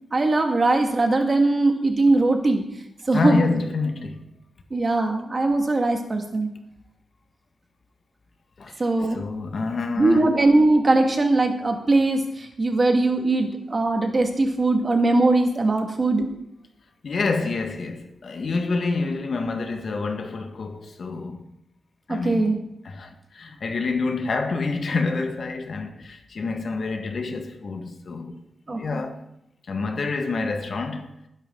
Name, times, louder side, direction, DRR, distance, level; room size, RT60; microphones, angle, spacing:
voice 1, 0.1-2.6 3.1-3.4 4.7-6.5 8.8-9.2 10.0-16.3 22.1-22.6 28.7-29.0, right 2 dB, 35° right, 2.1 m, -20 dB
voice 2, 3.1-4.2 8.6-10.4 17.0-21.5 22.1-22.6 22.8-28.4 28.7-29.2 29.7-31.1, left 3 dB, 60° left, 1.8 m, -27 dB
20.0 x 10.5 x 4.0 m
wide cardioid pair, 120°, 0 cm